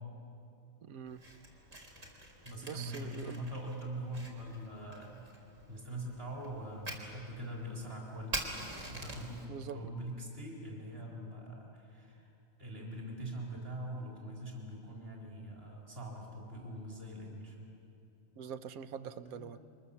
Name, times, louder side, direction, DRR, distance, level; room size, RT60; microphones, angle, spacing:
voice 1, 0.8-1.2 2.6-3.4 9.5-9.9 18.4-19.6, right 7 dB, 90° right, 12 dB, 1.3 m, -44 dB
Fire, 1.1-9.4, right 1 dB, 60° right, 3.9 m, -46 dB
voice 2, 2.4-5.3 5.7-8.4 8.9-12.2 12.6-17.6 19.3-19.5, right 1 dB, 45° right, -3 dB, 4.2 m, -43 dB
29.5 x 25.0 x 7.1 m, 2.8 s
omnidirectional pair, 1.4 m